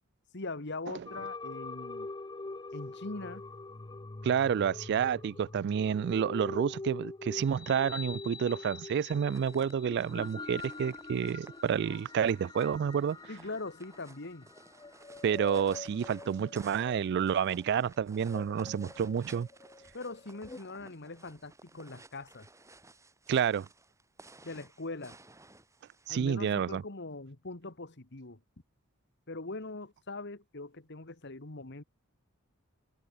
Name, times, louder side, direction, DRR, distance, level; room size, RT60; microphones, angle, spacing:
voice 1, 0.3-2.1 2.7-3.4 13.3-14.5 19.9-22.5 24.4-25.2 26.1-28.4 29.3-31.8, left 2 dB, 60° left, 1.9 m, -41 dB
sound 1, 1.0-20.6, left 3 dB, 20° left, 0.6 m, -44 dB
voice 2, 4.2-13.2 15.2-19.5 23.3-23.7 26.1-26.8, right 7 dB, 55° right, 0.3 m, -29 dB
sound 2, 9.1-26.2, right 2 dB, 15° right, 6.9 m, -56 dB
head